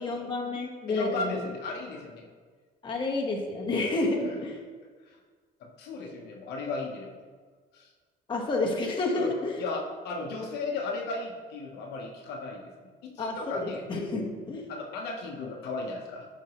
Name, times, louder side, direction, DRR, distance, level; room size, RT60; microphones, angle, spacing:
voice 1, 0.0-1.3 2.8-4.6 8.3-9.6 13.2-14.7, left 2 dB, 30° left, -2 dB, 1.3 m, -30 dB
voice 2, 0.9-2.3 3.8-3.9 4.2-4.4 5.6-7.1 7.7-7.9 9.1-9.3 9.6-12.7 13.0-13.9 14.7-16.3, left 3 dB, 80° left, 0 dB, 1.1 m, -35 dB
10.5 x 4.3 x 3.1 m, 1.5 s
cardioid pair, 110°, 17 cm